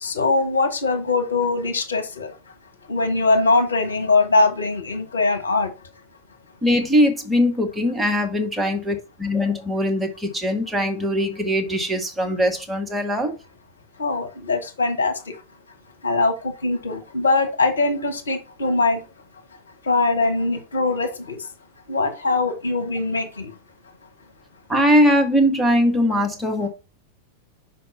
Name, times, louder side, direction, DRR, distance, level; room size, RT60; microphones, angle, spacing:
voice 1, 0.0-2.3 2.9-5.7 14.0-15.1 16.0-19.0 19.9-21.4 21.9-23.5, left 3 dB, 70° left, 1.6 m, -21 dB
voice 2, 6.6-13.4 24.7-26.7, equal, 10° right, 1.4 m, -21 dB
5.7 x 5.1 x 5.4 m
figure-of-eight pair, 90°, 0 cm